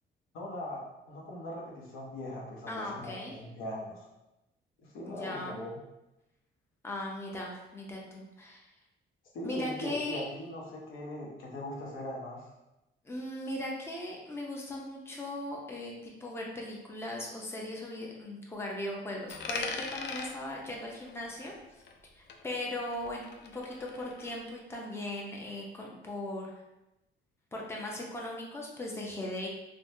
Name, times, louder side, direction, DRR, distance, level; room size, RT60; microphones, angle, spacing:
voice 1, 0.3-4.1 4.8-5.8 9.3-12.5, left 1 dB, 85° left, -2 dB, 0.8 m, -40 dB
voice 2, 2.7-3.3 5.0-5.6 6.8-8.7 9.4-10.2 13.0-21.5 22.2-26.6 27.5-29.5, left 1 dB, 10° left, -2 dB, 0.6 m, -38 dB
Coin (dropping), 19.3-22.0 22.3-24.3, left 5 dB, 60° left, 0.4 m, -42 dB
3.2 x 2.1 x 2.6 m, 0.93 s
cardioid pair, 90°, 20 cm